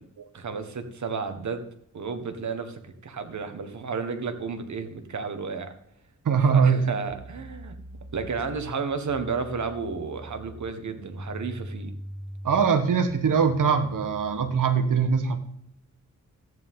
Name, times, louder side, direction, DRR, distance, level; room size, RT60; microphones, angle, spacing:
voice 1, 0.3-1.6 1.9-5.7 6.5-7.8 8.1-11.9, right 5 dB, 65° right, 8 dB, 1.5 m, -32 dB
voice 2, 6.2-6.8 12.4-15.4, right 6 dB, 90° right, 8 dB, 1.3 m, -22 dB
sound 1, 7.1-14.6, equal, 20° right, 1.7 m, -43 dB
14.0 x 9.5 x 3.7 m, 0.74 s
wide cardioid pair, 90°, 31 cm